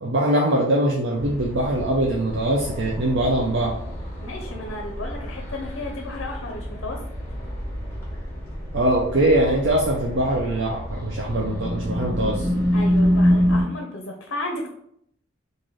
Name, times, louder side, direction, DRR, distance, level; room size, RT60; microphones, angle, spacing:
voice 1, 0.0-3.7 8.7-12.5, right 1 dB, 60° right, -3 dB, 0.6 m, -22 dB
sound 1, 1.2-13.6, equal, 15° left, 1.0 m, -27 dB
voice 2, 4.2-7.0 12.7-14.7, left 2 dB, 65° left, 2 dB, 0.6 m, -33 dB
3.8 x 2.6 x 3.1 m, 0.71 s
head